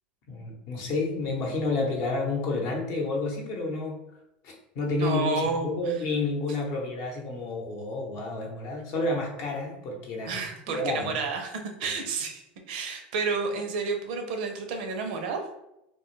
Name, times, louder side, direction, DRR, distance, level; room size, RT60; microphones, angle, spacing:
voice 1, 0.3-4.0 4.4-10.4 10.7-11.1 11.8-11.9, left 2 dB, 55° left, 0 dB, 0.7 m, -30 dB
voice 2, 5.0-5.7 10.2-15.5, right 4 dB, 70° right, 4 dB, 0.5 m, -30 dB
2.2 x 2.1 x 3.0 m, 0.87 s
hypercardioid pair, 95°, 5 cm